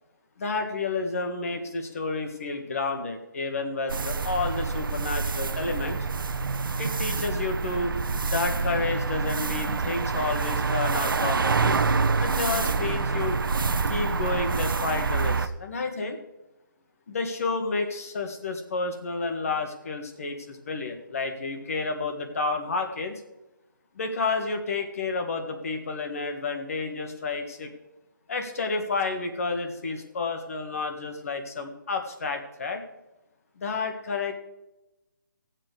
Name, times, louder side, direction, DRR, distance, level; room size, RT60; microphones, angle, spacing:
voice 1, 0.4-6.0 6.8-8.0 8.3-11.8 12.2-13.4 13.9-16.2 17.1-23.1 23.9-27.7 28.3-32.8 33.6-34.3, left 3 dB, 45° left, 5 dB, 1.7 m, -30 dB
sound 1, 3.9-15.5, right 4 dB, 85° right, 0.8 m, -27 dB
17.0 x 7.5 x 4.9 m, 0.98 s
hypercardioid pair, 175°, 11 cm